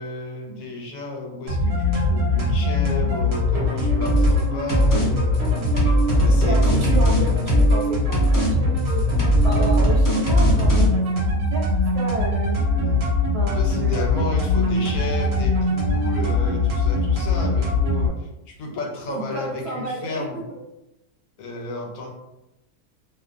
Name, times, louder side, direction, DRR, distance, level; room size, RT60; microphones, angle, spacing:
voice 1, 0.0-5.6 6.2-7.0 12.8-13.1 13.6-20.4 21.4-22.1, left 3 dB, 75° left, 1 dB, 1.0 m, -32 dB
sound 1, 1.5-18.1, left 2 dB, 85° right, 1.3 m, -22 dB
sound 2, 4.0-4.4 4.7-5.1 5.3-7.8 8.1-8.5 8.8-10.9, right 1 dB, 25° left, 0.4 m, -19 dB
voice 2, 6.3-11.0 11.3-11.6 11.9-12.6 13.3-14.0 19.1-20.6, right 2 dB, 70° right, -1 dB, 0.6 m, -31 dB
2.8 x 2.1 x 2.4 m, 0.92 s
omnidirectional pair, 1.5 m